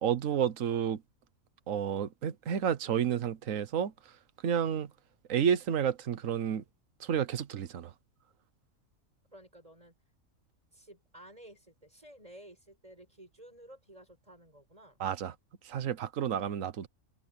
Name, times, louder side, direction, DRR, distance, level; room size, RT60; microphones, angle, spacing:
voice 1, 0.0-1.0 1.7-4.2 4.4-4.9 5.3-6.6 7.0-7.9 15.0-15.3 15.6-16.9, right 8 dB, 70° right, 1.4 m, -30 dB
voice 2, 9.3-9.9 10.7-15.0, right 1 dB, 25° right, 7.4 m, -53 dB
omnidirectional pair, 1.4 m